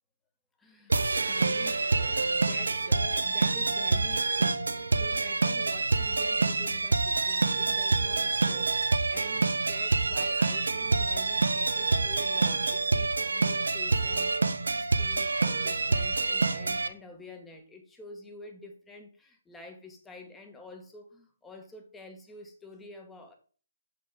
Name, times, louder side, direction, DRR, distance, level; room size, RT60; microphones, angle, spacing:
voice 1, 0.6-14.4 14.8-23.3, left 2 dB, 10° left, 1.3 m, -48 dB
sound 1, 0.9-16.9, right 3 dB, 75° right, 0.7 m, -27 dB
6.6 x 6.2 x 3.6 m
figure-of-eight pair, 140°, 0 cm